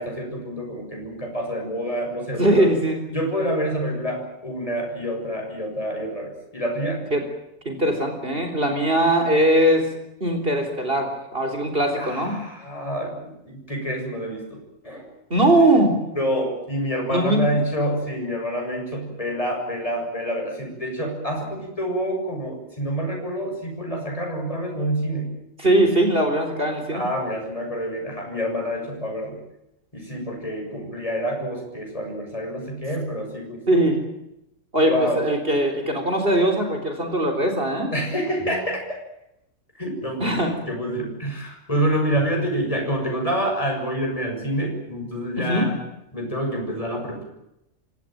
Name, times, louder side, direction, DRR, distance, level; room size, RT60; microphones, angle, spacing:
voice 1, 0.0-2.7 3.1-7.0 12.0-14.6 14.8-15.1 16.1-25.3 26.9-29.4 29.9-33.8 34.8-35.2 37.9-38.8 39.8-45.8 46.1-47.2, equal, 25° left, 0 dB, 7.0 m, -27 dB
voice 2, 2.3-3.0 7.1-7.2 7.7-9.9 10.2-12.3 15.3-16.0 17.1-17.6 25.6-27.1 33.7-34.0 34.7-37.9 40.2-40.5 45.4-45.7, right 1 dB, 45° right, 4 dB, 4.0 m, -20 dB
28.0 x 16.5 x 9.2 m, 0.84 s
omnidirectional pair, 1.3 m